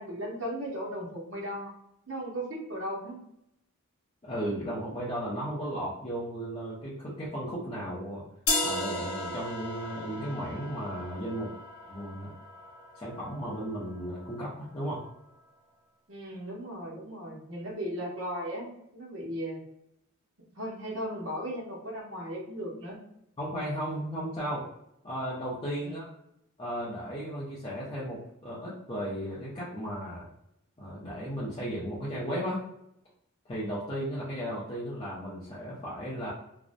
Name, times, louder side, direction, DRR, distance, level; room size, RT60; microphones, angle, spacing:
voice 1, 0.0-1.7 2.1-3.2 16.1-19.6 20.4-23.0 25.8-26.0, equal, 55° right, -3 dB, 0.7 m, -36 dB
voice 2, 4.2-8.2 8.6-11.5 11.9-12.3 13.0-15.0 23.4-24.7 25.0-26.1 26.6-30.3 30.8-32.6 33.5-36.3, equal, 25° left, -8 dB, 0.4 m, -35 dB
sound 1, 8.5-14.4, left 2 dB, 85° left, 0.6 m, -36 dB
2.5 x 2.0 x 2.4 m, 0.79 s
head